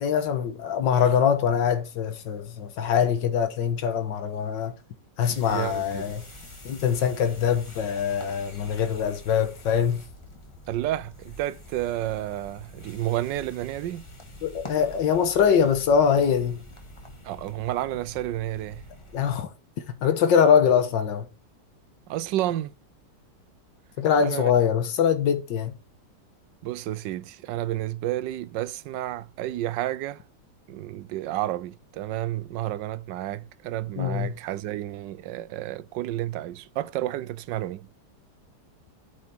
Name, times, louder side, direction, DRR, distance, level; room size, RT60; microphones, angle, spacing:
voice 1, 0.0-4.7 5.2-6.2 6.7-10.0 14.4-16.6 19.1-19.5 20.0-21.3 24.0-25.8 34.0-34.3, left 7 dB, 90° left, 1.8 m, -23 dB
sound 1, 5.2-19.4, left 1 dB, 20° left, 1.4 m, -46 dB
voice 2, 5.4-6.0 10.7-14.0 17.2-18.8 22.1-22.7 24.2-24.5 26.6-30.2 30.7-37.9, right 14 dB, 85° right, 1.3 m, -31 dB
8.7 x 5.7 x 4.5 m
omnidirectional pair, 1.9 m